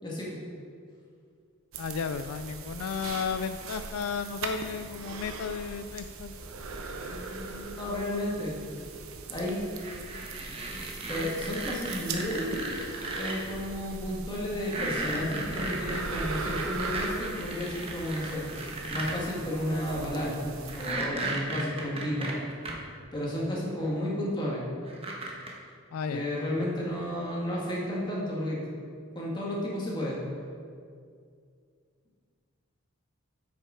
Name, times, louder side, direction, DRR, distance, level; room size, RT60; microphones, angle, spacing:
voice 1, 0.0-0.4 6.7-8.5 9.3-9.6 10.5-10.6 11.1-18.4 18.9-22.3 23.1-24.7 26.1-28.6 29.2-30.2, left 1 dB, 20° left, -5 dB, 1.8 m, -32 dB
sound 1, 1.7-20.9, right 3 dB, 75° right, 0.8 m, -40 dB
voice 2, 1.8-6.3 25.9-26.3, left 6 dB, 85° left, 10 dB, 0.3 m, -33 dB
sound 2, 9.8-13.3 14.6-19.2 20.7-22.7 23.8-23.9 24.9-25.5, right 2 dB, 25° right, 1.0 m, -35 dB
8.7 x 6.1 x 5.0 m, 2.2 s
head